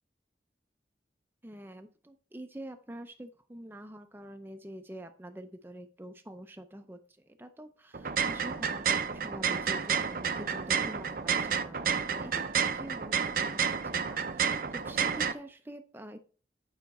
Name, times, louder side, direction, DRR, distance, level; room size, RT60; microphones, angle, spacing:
voice 1, 1.4-16.2, right 1 dB, 10° right, 7 dB, 0.5 m, -46 dB
sound 1, 7.9-15.3, right 7 dB, 50° right, 0.6 m, -30 dB
9.2 x 5.7 x 4.1 m, 0.40 s
head